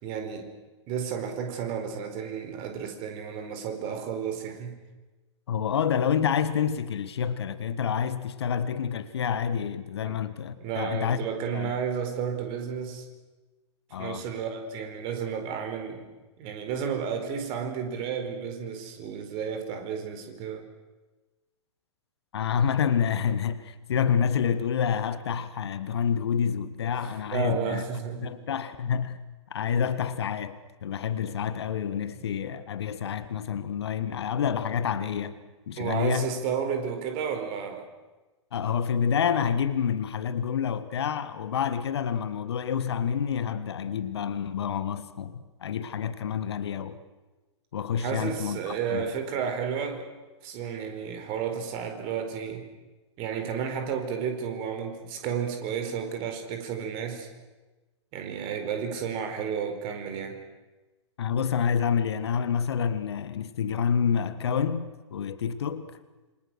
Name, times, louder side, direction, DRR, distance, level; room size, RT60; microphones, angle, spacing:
voice 1, 0.0-0.5 0.9-4.8 10.0-10.2 10.6-13.1 14.0-16.0 16.4-20.6 27.0-28.3 35.8-37.8 48.0-50.1 50.4-52.6 53.2-57.3 58.1-60.4, right 7 dB, 35° right, 4.5 m, -32 dB
voice 2, 5.5-11.2 11.5-11.7 13.9-14.2 22.3-27.8 28.2-29.2 29.5-35.4 35.7-36.3 38.5-47.0 47.7-49.1 61.2-66.0, left 7 dB, 60° left, 1.6 m, -28 dB
27.5 x 26.0 x 6.4 m
figure-of-eight pair, 110°, 15 cm